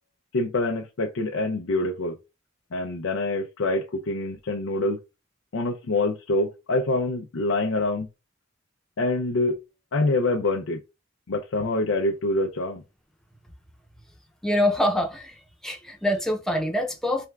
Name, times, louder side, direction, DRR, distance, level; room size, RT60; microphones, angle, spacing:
voice 1, 0.3-2.2 2.7-5.0 5.5-8.1 9.0-9.6 9.9-10.8 11.3-12.8, left 2 dB, 85° left, 0.5 m, -25 dB
voice 2, 14.4-17.3, left 1 dB, 5° left, 0.7 m, -25 dB
3.3 x 2.3 x 3.3 m
head